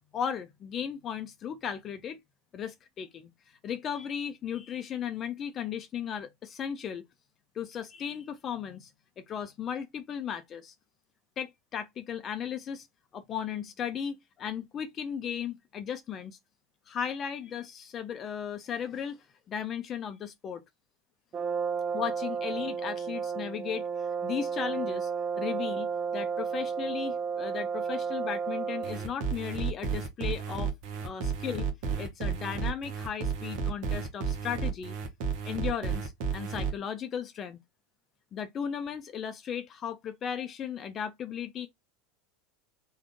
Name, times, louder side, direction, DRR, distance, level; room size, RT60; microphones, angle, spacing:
voice 1, 0.0-2.2 2.5-7.1 7.5-8.9 9.3-10.7 11.4-12.9 13.1-16.4 16.9-19.2 19.5-20.6 21.9-25.1 25.4-30.7 31.0-31.7 32.0-34.9 35.4-37.6 38.3-41.7, left 8 dB, 35° left, 0.5 m, -36 dB
Brass instrument, 21.3-29.1, right 6 dB, 30° right, 0.4 m, -32 dB
sound 1, 28.8-36.7, right 6 dB, 55° right, 0.8 m, -32 dB
3.6 x 2.3 x 3.6 m
figure-of-eight pair, 80°, 0 cm